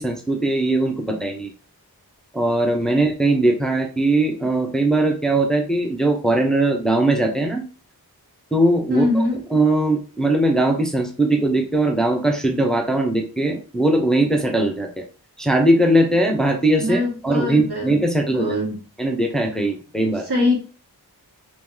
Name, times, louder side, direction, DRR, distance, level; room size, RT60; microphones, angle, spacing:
voice 1, 0.0-1.5 2.3-7.6 8.5-9.2 9.5-15.0 15.4-18.5 19.0-20.3, right 1 dB, ahead, 2 dB, 0.7 m, -20 dB
voice 2, 8.9-9.4 16.8-17.9 18.3-18.8 20.3-20.6, left 2 dB, 85° right, -3 dB, 1.7 m, -22 dB
3.0 x 2.9 x 3.8 m, 0.36 s
wide cardioid pair, 70°, 38 cm